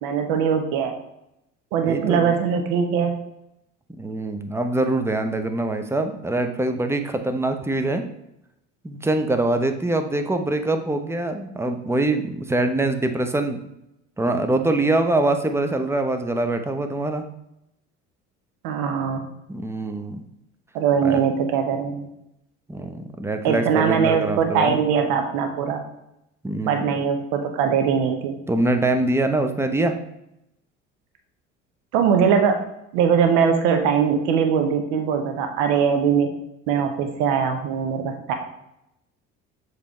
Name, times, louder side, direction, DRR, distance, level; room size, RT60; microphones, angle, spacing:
voice 1, 0.0-0.9 1.7-3.2 18.6-19.2 20.7-22.1 23.4-25.8 26.7-28.4 31.9-32.6 32.9-36.3 36.7-38.3, right 7 dB, 65° right, 5 dB, 1.0 m, -21 dB
voice 2, 1.8-2.4 4.0-8.0 8.8-13.6 14.2-17.2 19.5-20.2 21.0-21.2 22.7-24.8 26.4-26.9 28.5-29.9, right 2 dB, 5° right, 6 dB, 0.8 m, -24 dB
7.1 x 3.3 x 4.3 m, 0.83 s
hypercardioid pair, 65°, 37 cm